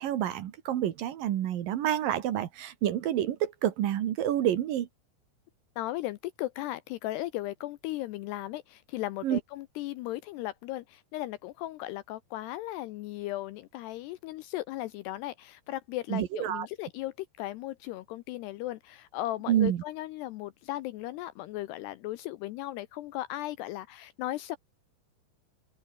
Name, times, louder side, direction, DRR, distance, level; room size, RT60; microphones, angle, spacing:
voice 1, 0.0-4.9 9.2-9.4 16.1-16.7 19.5-19.8, right 11 dB, 60° right, 2.6 m, -28 dB
voice 2, 5.8-24.6, left 16 dB, 80° left, 2.5 m, -36 dB
open air
omnidirectional pair, 5.4 m